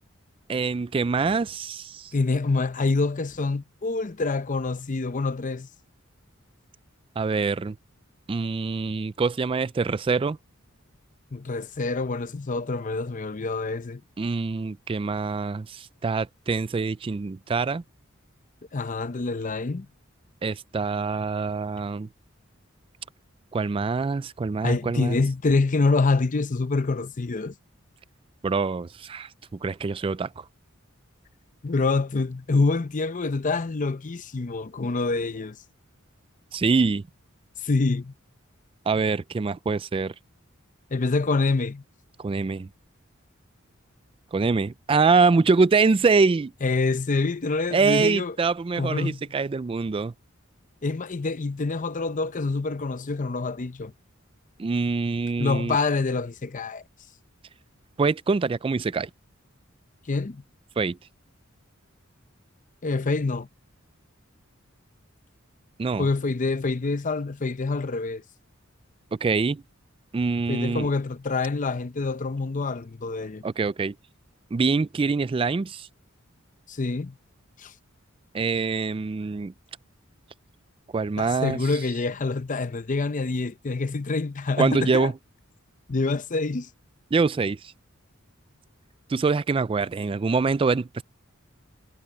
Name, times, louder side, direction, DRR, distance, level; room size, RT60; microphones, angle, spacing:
voice 1, 0.5-2.1 7.2-7.8 8.3-10.4 14.2-17.8 20.4-22.1 23.5-25.2 28.4-29.3 29.6-30.4 36.5-37.0 38.9-40.1 42.2-42.7 44.3-46.5 47.7-50.1 54.6-55.8 58.0-59.1 60.8-61.0 65.8-66.1 69.1-69.6 70.1-70.9 73.4-73.9 74.5-75.9 78.3-79.5 80.9-81.6 84.6-85.1 87.1-87.6 89.1-91.0, right 4 dB, 25° right, 0.3 m, -24 dB
voice 2, 2.1-5.7 11.3-14.0 18.7-19.9 24.6-27.5 31.6-35.6 37.6-38.1 40.9-41.8 46.6-48.4 48.8-49.2 50.8-53.9 55.4-56.8 60.1-60.4 62.8-63.5 66.0-68.2 70.5-73.4 76.7-77.2 77.6-77.7 81.2-85.1 85.9-86.7, left 3 dB, 40° left, 0.6 m, -26 dB
head